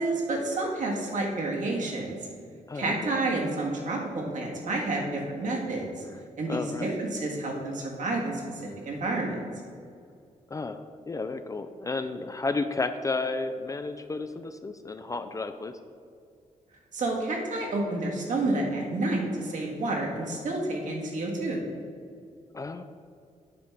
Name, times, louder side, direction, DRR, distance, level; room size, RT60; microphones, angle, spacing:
voice 1, 0.0-2.2 2.7-6.0 6.4-9.4 16.9-21.6, right 2 dB, 70° right, -1 dB, 1.7 m, -29 dB
voice 2, 2.7-3.1 6.5-6.9 10.5-15.7 22.5-22.8, left 3 dB, 25° left, 8 dB, 0.4 m, -32 dB
9.3 x 3.6 x 5.6 m, 2.4 s
cardioid pair, 100°, 14 cm